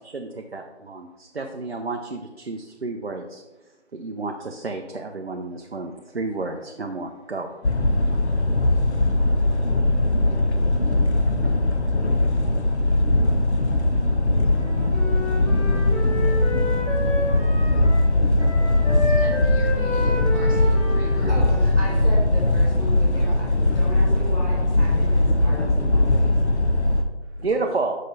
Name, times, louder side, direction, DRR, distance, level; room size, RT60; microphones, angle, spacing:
voice 1, 0.0-3.4 3.9-7.5 27.4-28.0, right 3 dB, 55° right, 2 dB, 0.6 m, -30 dB
sound 1, 7.6-27.0, left 2 dB, 65° left, 0.9 m, -20 dB
Wind instrument woodwind instrument, 14.5-18.1 18.4-22.3, left 1 dB, 10° left, 1.8 m, -31 dB
voice 2, 19.0-21.3, equal, 30° left, -8 dB, 2.1 m, -41 dB
voice 3, 21.0-26.4 27.4-27.7, equal, 10° right, -17 dB, 1.8 m, -36 dB
6.6 x 5.3 x 4.0 m, 1.1 s
figure-of-eight pair, 175°, 36 cm